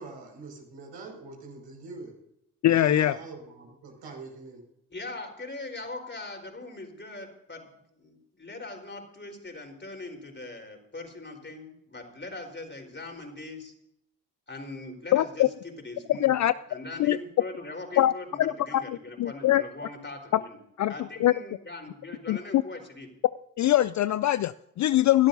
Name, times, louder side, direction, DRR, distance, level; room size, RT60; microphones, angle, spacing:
voice 1, 0.0-2.1 2.8-4.6, right 3 dB, 65° right, 0 dB, 5.6 m, -43 dB
voice 2, 2.6-3.2 15.1-15.5 16.2-16.5 17.0-17.2 18.0-18.1 18.4-19.6 20.3-20.4 20.8-20.9 21.2-21.3 22.3-22.6 23.6-25.3, left 13 dB, 40° left, 16 dB, 0.4 m, -23 dB
voice 3, 4.9-13.7 14.5-16.3 16.7-20.6 20.9-23.1, left 2 dB, 25° left, 3 dB, 4.2 m, -41 dB
25.0 x 12.5 x 2.7 m, 0.79 s
hypercardioid pair, 40°, 45 cm